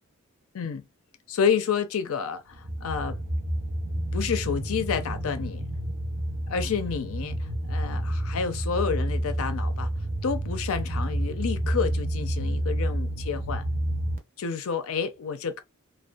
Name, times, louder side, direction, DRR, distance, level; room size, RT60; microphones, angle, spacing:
voice 1, 1.3-3.2 4.1-5.6 6.5-9.9 10.2-13.6 14.4-15.6, left 6 dB, 65° left, 0.5 m, -29 dB
sound 1, 2.5-14.2, right 1 dB, 40° right, 0.6 m, -29 dB
2.5 x 2.2 x 2.2 m
head